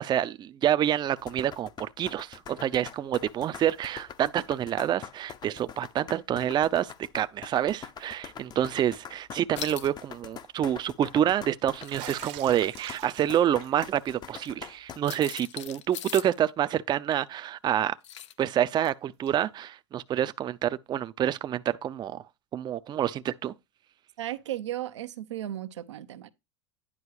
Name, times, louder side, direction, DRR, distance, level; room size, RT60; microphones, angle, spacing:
voice 1, 0.0-18.0 18.4-22.2 22.5-23.5, right 11 dB, 30° right, 0.5 m, -27 dB
sound 1, 1.2-15.0, left 8 dB, 30° left, 0.7 m, -44 dB
sound 2, 9.6-9.9 11.6-12.4 14.4-14.5 15.0-16.4 18.0-18.4 18.8-18.9, left 11 dB, 80° left, 0.8 m, -40 dB
Bathtub (filling or washing), 9.6-10.0 10.3-10.4 11.9-15.2 15.5-15.7 16.0-16.1 17.4-17.5 19.3-19.4, right 16 dB, 60° right, 1.0 m, -46 dB
voice 2, 24.2-26.3, right 13 dB, 90° right, 0.8 m, -35 dB
10.0 x 4.7 x 4.7 m
hypercardioid pair, 105°, 15 cm